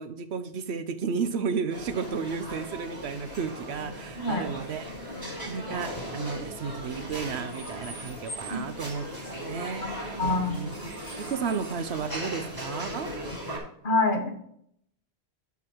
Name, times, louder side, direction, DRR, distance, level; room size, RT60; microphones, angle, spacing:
voice 1, 0.0-4.9 5.4-9.0 9.4-10.7 11.2-13.1, right 6 dB, 80° right, 11 dB, 1.1 m, -33 dB
sound 1, 1.7-13.6, equal, 15° left, 4.2 m, -38 dB
voice 2, 4.2-4.5 8.5-8.6 9.8-9.9 10.2-10.6 13.8-14.3, left 3 dB, 55° left, 4 dB, 1.5 m, -26 dB
11.0 x 5.5 x 4.6 m, 0.70 s
omnidirectional pair, 1.1 m